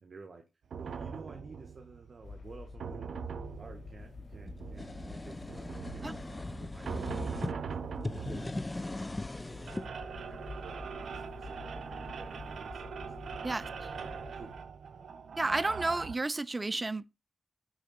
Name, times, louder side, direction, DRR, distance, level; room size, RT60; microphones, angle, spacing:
voice 1, 0.0-0.4 0.7-3.3 3.6-5.5 5.9-7.2 7.5-7.9 8.2-14.6 15.5-15.6, right 4 dB, 60° right, 1.4 m, -53 dB
sound 1, 0.7-16.2, right 6 dB, 80° right, 0.8 m, -42 dB
sound 2, 2.2-14.6, left 4 dB, 70° left, 3.8 m, -48 dB
sound 3, 4.5-7.5 8.0-9.9, left 2 dB, 25° left, 0.4 m, -39 dB
voice 2, 15.3-17.1, right 2 dB, 30° right, 0.6 m, -31 dB
9.8 x 3.7 x 7.0 m
cardioid pair, 65°, 0 cm